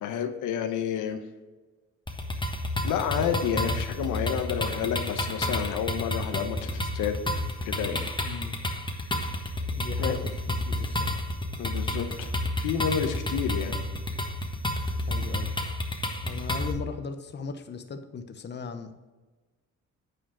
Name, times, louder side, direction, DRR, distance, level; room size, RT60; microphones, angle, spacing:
voice 1, 0.0-1.2 2.8-7.2 7.6-8.1 10.0-10.1 11.6-13.7, left 8 dB, 85° left, 6 dB, 1.0 m, -30 dB
sound 1, 2.1-16.7, left 1 dB, 15° left, 1.3 m, -30 dB
voice 2, 8.2-8.6 9.8-11.2 15.1-15.6 16.2-19.0, left 5 dB, 35° left, 8 dB, 0.9 m, -38 dB
9.1 x 4.6 x 6.1 m, 1.3 s
cardioid pair, 90°, 30 cm